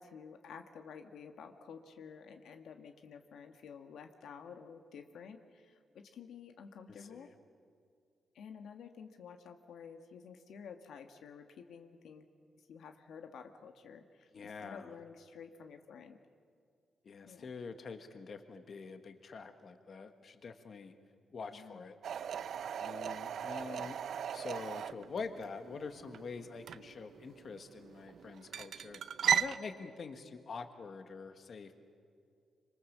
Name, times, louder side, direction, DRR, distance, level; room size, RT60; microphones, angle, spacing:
voice 1, 0.0-7.3 8.3-12.3 12.7-16.2 17.3-17.5 21.5-21.8 23.7-23.9, left 6 dB, 80° left, 6 dB, 1.5 m, -51 dB
voice 2, 14.3-14.9 17.0-20.9 21.3-22.0 22.8-24.0 24.3-29.0 29.3-31.7, left 4 dB, 45° left, 7 dB, 1.6 m, -45 dB
sound 1, 22.0-29.6, right 8 dB, 65° right, 0.6 m, -37 dB
27.0 x 25.5 x 7.4 m, 2.3 s
wide cardioid pair, 140°, 0 cm